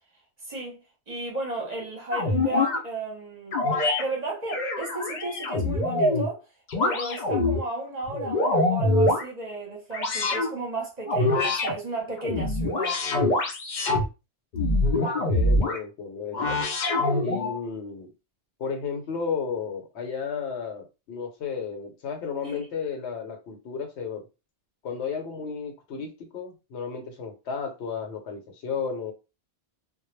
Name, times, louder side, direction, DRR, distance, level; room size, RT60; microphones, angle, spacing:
voice 1, 0.4-0.8 1.1-3.6 4.0-6.5 6.8-13.0 22.4-22.6, right 2 dB, 45° right, 0.7 m, -34 dB
sound 1, 2.1-2.8 3.5-4.0 4.5-6.3 6.7-7.6 8.1-9.2 9.9-10.5 11.1-11.7 12.2-14.0 14.5-15.8 16.3-17.6, left 2 dB, 55° left, 0.6 m, -24 dB
voice 2, 15.1-16.6 17.2-18.1 18.6-24.2 24.8-29.1, left 6 dB, 80° left, 1.0 m, -33 dB
2.2 x 2.0 x 3.1 m
omnidirectional pair, 1.1 m